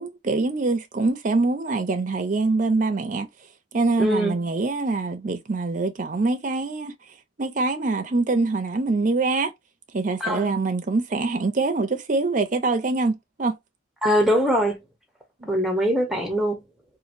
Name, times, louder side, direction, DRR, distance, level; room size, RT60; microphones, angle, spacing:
voice 1, 0.0-3.3 3.7-6.9 7.4-9.5 9.9-13.5 15.4-15.5, right 3 dB, 40° right, 0.5 m, -24 dB
voice 2, 4.0-4.3 10.2-10.5 14.0-14.8 15.5-16.6, equal, ahead, 0.7 m, -22 dB
2.9 x 2.5 x 2.5 m
head